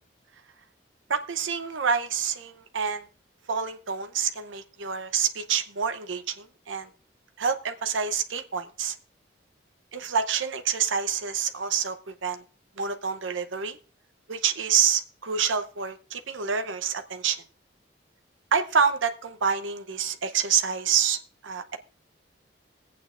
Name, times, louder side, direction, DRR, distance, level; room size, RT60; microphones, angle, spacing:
voice 1, 1.1-3.1 3.5-6.9 7.4-9.0 9.9-12.4 12.8-13.8 14.3-17.4 18.5-21.8, right 7 dB, 85° right, 9 dB, 0.8 m, -27 dB
21.5 x 8.6 x 2.5 m, 0.40 s
head